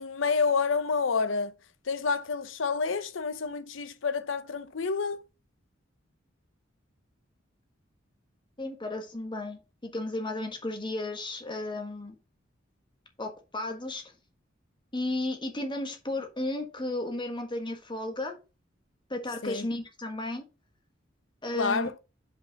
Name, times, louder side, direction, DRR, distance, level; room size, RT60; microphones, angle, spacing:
voice 1, 0.0-1.5 1.9-5.2 19.4-19.7 21.5-22.0, left 5 dB, 75° left, 0.7 m, -29 dB
voice 2, 8.6-12.1 13.2-14.0 14.9-18.3 19.1-20.5 21.4-21.9, left 2 dB, 25° left, 1.4 m, -34 dB
5.4 x 5.2 x 5.1 m
head